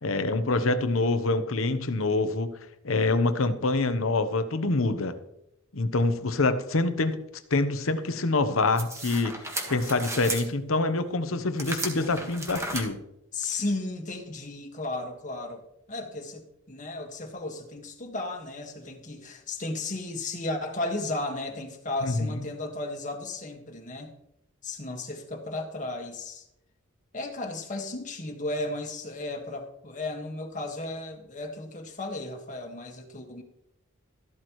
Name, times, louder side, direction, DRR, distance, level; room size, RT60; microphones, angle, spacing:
voice 1, 0.0-2.5 2.8-5.1 5.7-7.2 7.5-9.3 9.7-13.0 22.0-22.3, left 3 dB, 80° left, 10 dB, 1.0 m, -26 dB
sound 1, 8.8-10.5 11.6-12.8, right 2 dB, 15° right, 1.6 m, -34 dB
voice 2, 13.3-15.6 15.9-24.1 24.6-26.4 27.1-33.4, left 2 dB, 40° left, 3 dB, 1.7 m, -34 dB
13.5 x 12.0 x 3.2 m, 0.80 s
head